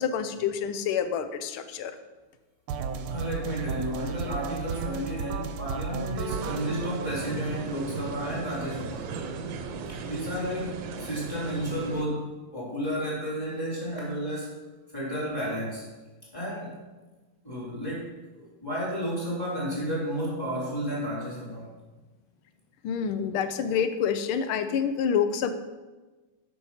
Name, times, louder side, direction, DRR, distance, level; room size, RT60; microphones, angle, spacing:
voice 1, 0.0-1.9 22.8-25.5, left 7 dB, 80° left, 10 dB, 1.5 m, -27 dB
sound 1, 2.7-8.7, right 5 dB, 85° right, 1.6 m, -35 dB
voice 2, 3.1-9.1 9.9-12.3 12.5-14.5 14.9-15.8 16.3-16.8 17.4-18.1 18.3-21.7, equal, 10° left, -6 dB, 3.3 m, -32 dB
sound 2, 6.3-12.0, right 5 dB, 65° right, 1.4 m, -36 dB
8.2 x 6.2 x 5.6 m, 1.2 s
omnidirectional pair, 2.4 m